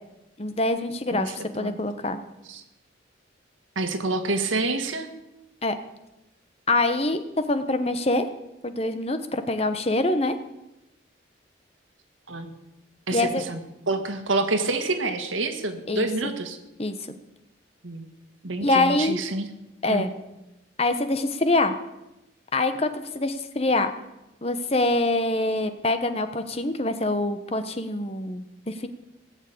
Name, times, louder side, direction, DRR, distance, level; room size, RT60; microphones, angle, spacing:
voice 1, 0.4-2.2 5.6-5.7 6.7-7.2 7.5-8.3 8.6-10.3 13.1-13.4 15.9-16.3 16.8-17.0 18.6-19.2 19.8-20.1 20.8-21.7 22.5-23.9 24.4-28.9, left 2 dB, 30° left, 9 dB, 1.0 m, -25 dB
voice 2, 1.1-1.8 2.5-2.6 3.7-5.1 12.3-12.5 13.1-13.6 13.9-16.6 17.8-18.1 18.4-19.5 19.9-20.1, right 2 dB, 85° right, 7 dB, 1.7 m, -28 dB
18.0 x 7.4 x 8.5 m, 0.96 s
head